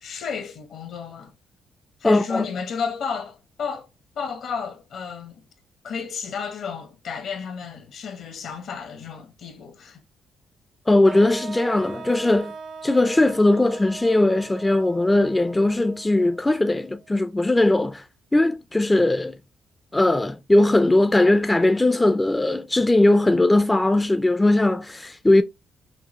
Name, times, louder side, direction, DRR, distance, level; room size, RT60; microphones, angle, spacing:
voice 1, 0.0-1.3 2.0-3.9 4.1-5.4 5.8-10.0, left 6 dB, 70° left, 1.2 m, -32 dB
voice 2, 2.0-2.5 10.9-12.5 12.8-18.0 18.3-19.3 19.9-25.4, left 2 dB, 15° left, 0.4 m, -19 dB
sound 1, 11.1-17.1, right 5 dB, 55° right, 0.6 m, -40 dB
5.8 x 2.2 x 3.0 m
cardioid pair, 90°, 0 cm